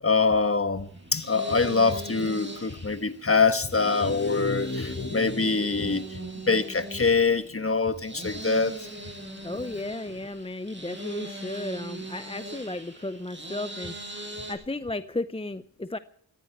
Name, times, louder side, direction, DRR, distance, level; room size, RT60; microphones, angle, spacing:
voice 1, 0.0-8.7, left 4 dB, 30° left, 1.3 m, -24 dB
sound 1, 0.8-14.5, right 1 dB, 25° right, 6.8 m, -40 dB
voice 2, 9.4-13.9 14.5-16.0, left 2 dB, 15° left, 0.6 m, -34 dB
19.5 x 15.0 x 4.4 m
cardioid pair, 50°, 46 cm